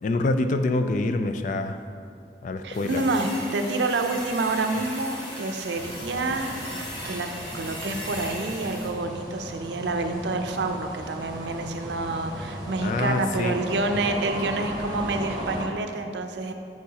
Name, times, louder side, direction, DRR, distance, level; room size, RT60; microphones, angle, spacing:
voice 1, 0.0-1.8 2.4-3.0 12.8-13.6, left 2 dB, 45° left, 8 dB, 0.3 m, -26 dB
voice 2, 2.6-16.5, right 2 dB, 80° right, 6 dB, 0.5 m, -28 dB
sound 1, 2.7-8.9, equal, 20° left, 1.2 m, -38 dB
sound 2, 5.7-15.6, right 1 dB, 25° right, 0.9 m, -36 dB
8.5 x 4.7 x 2.8 m, 2.3 s
head